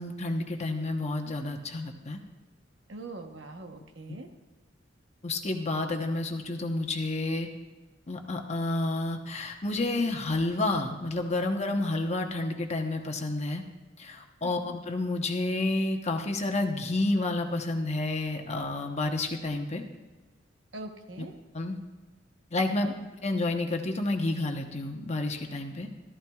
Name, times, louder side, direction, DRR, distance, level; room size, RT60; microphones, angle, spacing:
voice 1, 0.0-2.2 5.2-7.5 8.1-13.6 14.0-19.8 21.5-21.8 22.5-22.9 23.2-26.1, left 2 dB, 35° left, 3 dB, 1.0 m, -30 dB
voice 2, 2.9-4.3 14.4-14.7 20.7-21.3 22.8-22.9, right 2 dB, 70° right, 5 dB, 1.0 m, -42 dB
14.5 x 13.5 x 2.4 m, 1.2 s
head